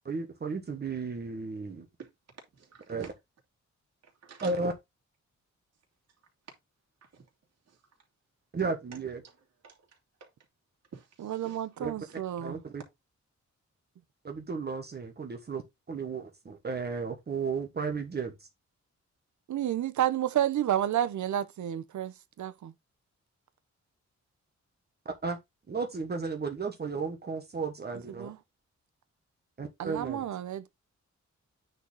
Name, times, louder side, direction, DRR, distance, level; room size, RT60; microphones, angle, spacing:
voice 1, 0.0-1.9 2.9-3.1 4.4-4.7 8.5-9.2 11.8-12.0 12.4-12.8 14.2-18.3 25.0-25.4 25.7-28.3 29.6-30.2, right 4 dB, 35° right, 1.3 m, -34 dB
voice 2, 2.0-3.1 4.0-4.6 6.5-6.6 7.0-7.3 7.7-7.8 9.2-9.4 9.6-10.3 10.9-11.8 12.1-12.2, right 6 dB, 60° right, 2.8 m, -51 dB
voice 3, 11.2-12.6 19.5-22.7 28.2-28.4 29.8-30.7, right 11 dB, 80° right, 0.8 m, -30 dB
9.2 x 4.1 x 4.0 m
wide cardioid pair, 170°, 29 cm